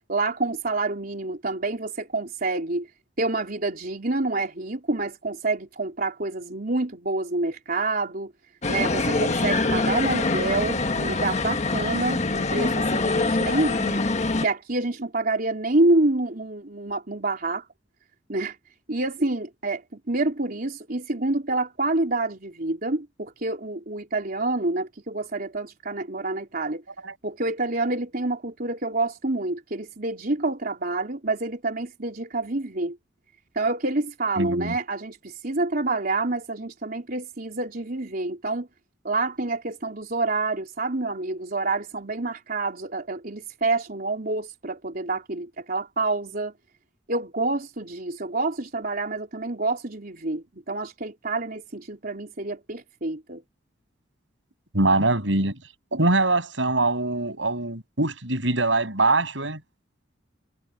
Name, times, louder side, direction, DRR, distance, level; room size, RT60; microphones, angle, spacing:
voice 1, 0.1-2.9 3.2-8.3 8.7-14.0 14.4-17.6 18.3-18.6 18.9-19.8 20.1-26.8 27.2-33.0 33.6-38.7 39.0-46.5 47.1-53.4, right 2 dB, 50° right, 3.8 m, -27 dB
sound 1, 8.6-14.5, left 3 dB, 40° left, 1.3 m, -24 dB
voice 2, 34.4-34.7 54.7-55.6 55.9-59.6, right 2 dB, 85° right, 7.3 m, -23 dB
head